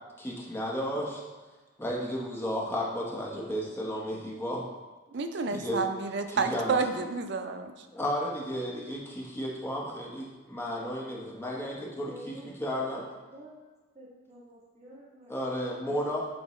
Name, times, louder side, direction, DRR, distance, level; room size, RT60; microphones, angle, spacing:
voice 1, 0.2-1.2 1.8-4.6 5.5-5.8 6.3-6.8 7.9-13.0 15.3-16.3, equal, 10° left, -4 dB, 0.9 m, -33 dB
voice 2, 5.1-7.9, right 4 dB, 55° right, 7 dB, 0.4 m, -30 dB
voice 3, 11.5-12.5 12.8-13.6 13.9-16.0, right 1 dB, 35° right, -8 dB, 1.7 m, -51 dB
8.5 x 3.6 x 3.1 m, 1.3 s
head